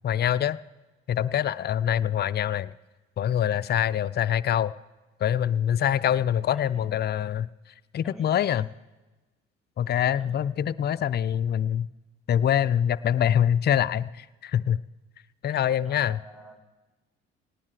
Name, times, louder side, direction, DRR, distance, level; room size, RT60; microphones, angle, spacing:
voice 1, 0.0-0.6 1.1-2.7 3.2-4.7 5.2-7.5 7.9-8.6 9.8-11.9 12.3-14.8 15.4-16.2, left 10 dB, 35° left, 17 dB, 0.4 m, -24 dB
voice 2, 5.8-7.0 8.0-8.7 10.1-10.4 15.5-16.6, equal, ahead, 4 dB, 2.3 m, -49 dB
19.0 x 17.5 x 3.3 m, 1.2 s
hypercardioid pair, 50°, 31 cm